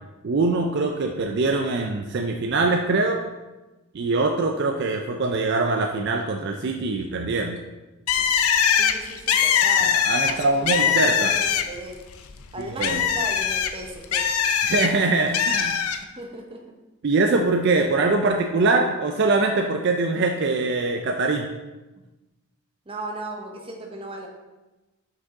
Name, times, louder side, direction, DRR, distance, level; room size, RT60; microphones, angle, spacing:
voice 1, 0.2-3.3 3.9-7.6 9.8-11.3 12.6-13.0 14.6-15.8 17.0-21.5, right 3 dB, 50° right, 3 dB, 0.4 m, -23 dB
Bird, 8.1-11.9 12.3-14.9 15.3-16.0, left 8 dB, 75° left, 0.4 m, -21 dB
voice 2, 8.7-9.9 10.3-12.0 12.5-14.3 16.0-16.6 22.9-24.3, right 2 dB, 25° right, 2 dB, 0.7 m, -36 dB
5.9 x 5.2 x 3.6 m, 1.1 s
head